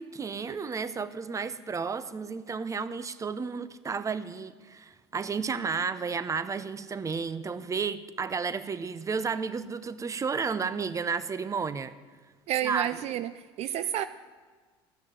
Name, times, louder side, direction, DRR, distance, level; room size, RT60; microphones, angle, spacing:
voice 1, 0.0-11.9 12.6-12.9, right 5 dB, 25° right, 14 dB, 0.8 m, -32 dB
voice 2, 12.5-14.0, right 12 dB, 55° right, 13 dB, 0.5 m, -30 dB
13.5 x 6.4 x 9.1 m, 1.5 s
hypercardioid pair, 75°, 13 cm